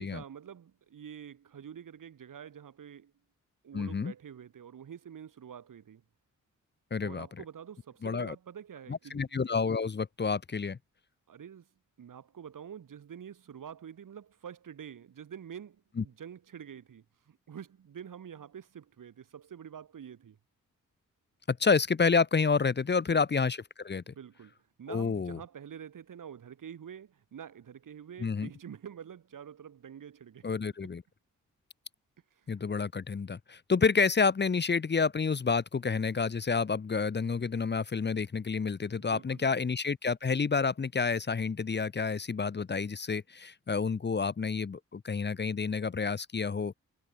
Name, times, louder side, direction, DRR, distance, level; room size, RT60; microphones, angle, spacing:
voice 1, 0.0-3.1 3.6-6.0 7.0-9.2 11.3-11.7 12.0-20.4 23.1-23.2 24.1-30.5 32.3-32.5 39.0-39.7, right 8 dB, 80° right, 5.7 m, -47 dB
voice 2, 3.7-4.1 6.9-7.3 8.0-8.3 8.9-10.8 16.0-16.1 21.5-24.1 24.9-25.4 28.2-28.5 30.4-31.0 32.5-46.8, left 5 dB, 35° left, 0.9 m, -29 dB
cardioid pair, 80°, 31 cm